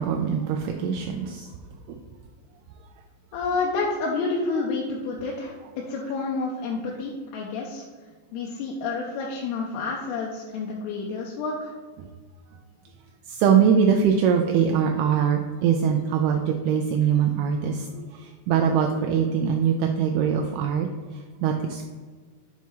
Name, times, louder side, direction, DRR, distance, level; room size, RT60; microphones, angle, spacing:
voice 1, 0.0-1.5 1.9-2.0 13.3-20.9 21.1-21.8, right 7 dB, 80° right, 3 dB, 2.4 m, -22 dB
voice 2, 3.3-7.9 8.3-11.7, left 3 dB, 85° left, -2 dB, 2.8 m, -29 dB
7.1 x 4.7 x 4.5 m, 1.5 s
omnidirectional pair, 4.8 m